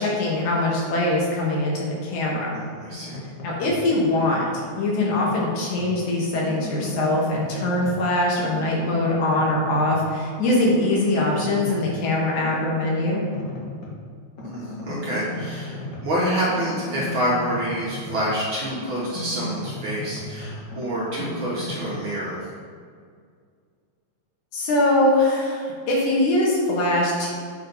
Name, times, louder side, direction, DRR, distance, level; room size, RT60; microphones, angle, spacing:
voice 1, 0.0-2.5 3.4-13.2 24.5-27.3, left 1 dB, 80° left, -3 dB, 2.9 m, -22 dB
voice 2, 2.5-3.1 14.4-22.5, right 1 dB, 55° right, -6 dB, 1.6 m, -27 dB
sound 1, 2.9-3.9 4.2-6.0 6.3-8.1 8.4-10.1 10.4-12.0 12.4-14.0 14.4-18.4 18.6-22.0, left 2 dB, 55° left, 1.2 m, -35 dB
7.9 x 5.0 x 4.0 m, 2.1 s
omnidirectional pair, 3.4 m